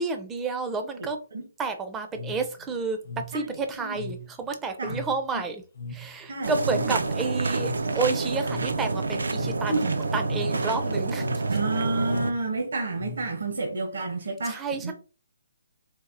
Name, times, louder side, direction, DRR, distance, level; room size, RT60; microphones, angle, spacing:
voice 1, 0.0-1.2 1.6-3.0 3.3-5.6 5.9-9.8 10.1-11.3 14.4-14.9, right 4 dB, 10° right, 0.4 m, -30 dB
voice 2, 1.0-1.4 3.3-4.0 4.8-5.0 5.3-5.4 6.3-7.0 9.7-10.0 11.5-14.9, right 3 dB, 65° right, 0.9 m, -30 dB
sound 1, 2.1-13.7, left 2 dB, 60° left, 0.6 m, -41 dB
sound 2, 6.4-12.3, right 3 dB, 85° right, 0.4 m, -28 dB
4.1 x 2.3 x 2.6 m
hypercardioid pair, 165°, 0 cm